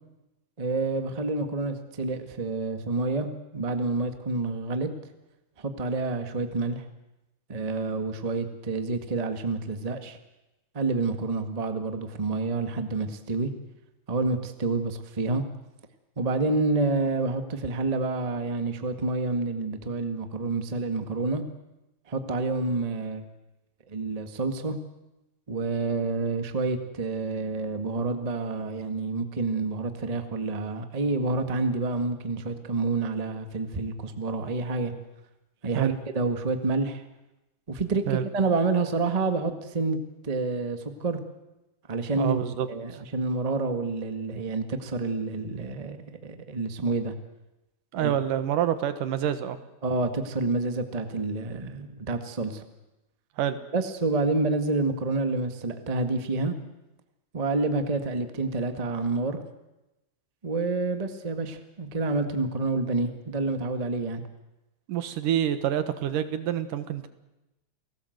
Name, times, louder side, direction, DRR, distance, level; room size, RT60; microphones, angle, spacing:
voice 1, 0.6-3.3 3.5-4.9 5.6-6.8 7.5-10.2 10.7-13.5 14.1-15.4 16.2-21.4 22.1-23.3 23.9-24.8 25.5-34.9 35.6-37.0 37.7-40.0 40.2-41.2 41.9-42.4 42.7-47.1 47.9-48.1 49.8-52.6 53.7-56.5 57.3-59.4 60.4-64.2, right 3 dB, 20° right, 8 dB, 1.0 m, -28 dB
voice 2, 42.1-42.7 47.9-49.6 53.4-53.6 64.9-67.1, right 10 dB, 85° right, 11 dB, 3.0 m, -27 dB
29.5 x 18.5 x 8.0 m, 0.98 s
omnidirectional pair, 3.7 m